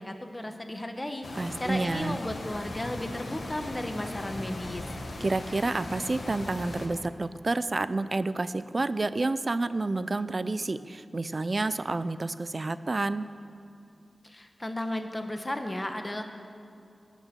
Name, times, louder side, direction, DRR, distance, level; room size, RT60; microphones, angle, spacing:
voice 1, 0.0-1.3 1.6-4.8 14.2-16.2, left 1 dB, 25° left, 6 dB, 1.1 m, -34 dB
sound 1, 1.2-6.9, left 2 dB, 80° left, 1.5 m, -38 dB
voice 2, 1.4-2.2 5.2-13.3, right 2 dB, 45° right, 14 dB, 0.4 m, -29 dB
17.5 x 6.2 x 6.8 m, 2.6 s
wide cardioid pair, 70°, 0 cm